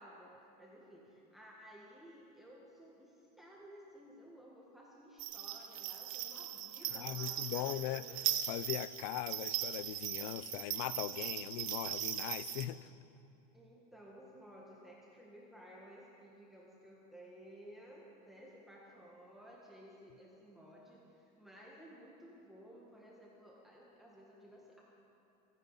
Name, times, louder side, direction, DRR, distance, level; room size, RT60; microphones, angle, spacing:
voice 1, 0.0-8.2 13.5-24.8, equal, ahead, -4 dB, 1.6 m, -56 dB
sound 1, 5.2-12.6, right 12 dB, 40° right, 1.0 m, -39 dB
voice 2, 6.9-8.0 8.5-12.9, left 14 dB, 55° left, 17 dB, 0.5 m, -40 dB
23.5 x 9.5 x 5.7 m, 2.8 s
supercardioid pair, 150°, 21 cm